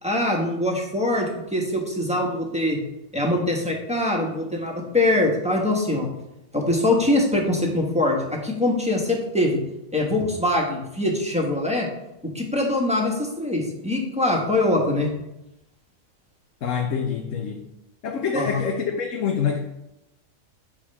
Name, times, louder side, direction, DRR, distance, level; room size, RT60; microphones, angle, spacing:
voice 1, 0.0-2.8 3.1-6.1 6.5-9.6 9.9-11.9 12.2-15.1 18.3-18.6, left 1 dB, 5° right, -2 dB, 1.4 m, -23 dB
voice 2, 16.6-17.7 18.0-19.6, left 6 dB, 75° left, 2 dB, 1.1 m, -26 dB
8.7 x 4.5 x 5.6 m, 0.90 s
omnidirectional pair, 1.3 m